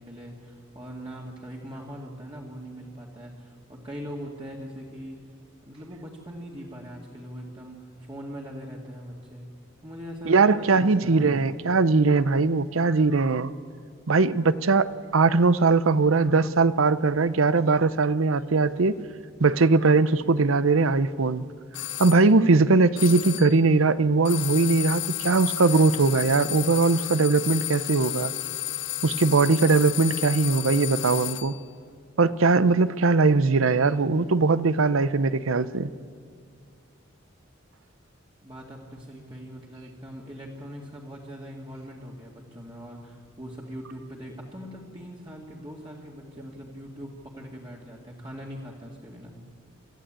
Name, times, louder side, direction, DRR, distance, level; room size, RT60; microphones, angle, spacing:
voice 1, 0.0-5.2 5.6-9.5 9.8-11.4 38.4-49.3, equal, 25° right, -3 dB, 2.2 m, -41 dB
voice 2, 10.3-13.5 14.1-19.0 19.4-21.4 22.0-28.3 29.0-31.5 32.2-35.9, right 3 dB, 85° right, 16 dB, 0.7 m, -20 dB
sound 1, 21.7-22.2 23.0-23.6 24.2-31.6, left 16 dB, 60° left, 0.6 m, -32 dB
26.5 x 14.0 x 8.9 m, 2.2 s
head